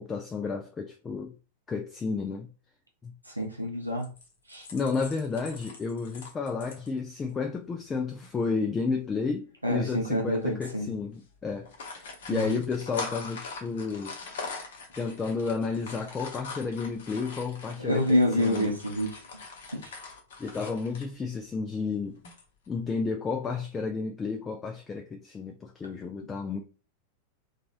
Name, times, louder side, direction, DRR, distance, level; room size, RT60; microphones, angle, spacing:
voice 1, 0.0-1.3 1.7-2.5 3.0-3.1 4.7-11.7 12.3-14.2 15.0-18.7 20.4-22.2 22.7-26.6, left 4 dB, 20° left, 0.4 m, -32 dB
voice 2, 3.3-4.1 4.5-4.7 9.6-10.9 12.3-12.6 17.8-19.2 19.7-19.9, left 1 dB, 85° right, 0.6 m, -27 dB
sound 1, 4.0-6.9 7.3-7.4 7.7-7.9 8.2-8.3 9.3-9.7 10.2-10.4 10.7-10.9 11.5-21.1 22.1-22.7, left 4 dB, 60° left, 0.8 m, -42 dB
2.9 x 2.3 x 2.5 m
figure-of-eight pair, 90°, 0 cm